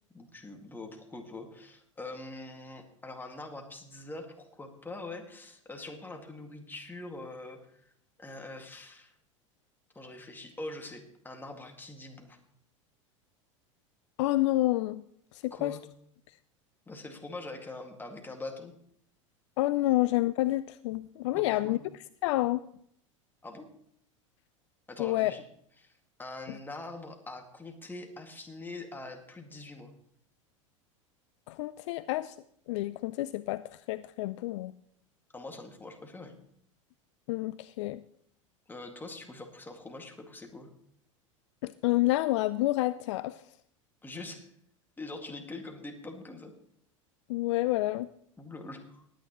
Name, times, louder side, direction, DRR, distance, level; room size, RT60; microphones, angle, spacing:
voice 1, 0.1-7.8 8.2-9.1 9.9-12.4 15.5-15.8 16.9-18.7 21.3-21.8 23.4-23.7 24.9-25.4 25.8-29.9 35.3-36.4 38.7-40.7 44.0-44.5 45.0-46.5 48.4-49.0, left 2 dB, 10° left, 4 dB, 2.0 m, -43 dB
voice 2, 14.2-15.0 15.3-15.8 19.6-21.8 22.2-22.6 25.0-25.3 31.5-32.3 32.7-34.7 37.3-38.0 41.6-43.4 47.3-48.1, left 17 dB, 65° left, 16 dB, 0.4 m, -28 dB
19.5 x 9.3 x 3.0 m, 0.67 s
hypercardioid pair, 85°, 17 cm